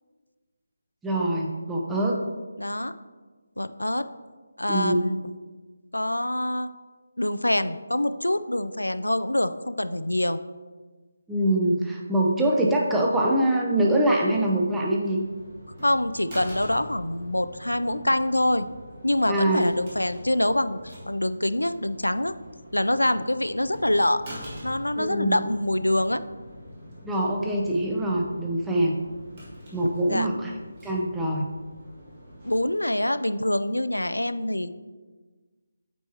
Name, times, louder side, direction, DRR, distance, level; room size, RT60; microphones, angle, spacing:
voice 1, 1.0-2.2 4.7-5.0 11.3-15.2 19.3-19.7 25.0-25.4 27.0-29.0 29.7-30.5 30.8-31.4, right 1 dB, 5° right, -2 dB, 0.6 m, -24 dB
voice 2, 2.6-2.9 3.6-4.0 4.6-5.2 5.9-6.7 7.2-10.4 15.8-18.7 19.0-22.3 22.7-24.3 24.6-26.2 29.8-30.3 32.4-34.7, left 1 dB, 85° left, 12 dB, 0.3 m, -25 dB
sound 1, 15.0-32.6, equal, 30° right, 1.7 m, -44 dB
8.1 x 4.4 x 2.8 m, 1.4 s
figure-of-eight pair, 155°, 0 cm